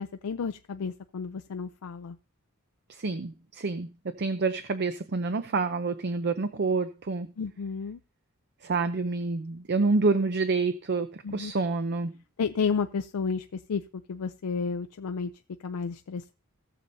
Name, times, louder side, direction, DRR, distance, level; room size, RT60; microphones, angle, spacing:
voice 1, 0.0-2.2 7.4-8.0 11.2-11.5 12.4-13.8 14.1-15.3 15.6-16.3, left 5 dB, 80° left, 9 dB, 0.4 m, -31 dB
voice 2, 2.9-3.9 4.2-7.3 8.6-12.1, right 3 dB, 50° right, 10 dB, 0.6 m, -28 dB
17.5 x 6.9 x 2.7 m, 0.34 s
head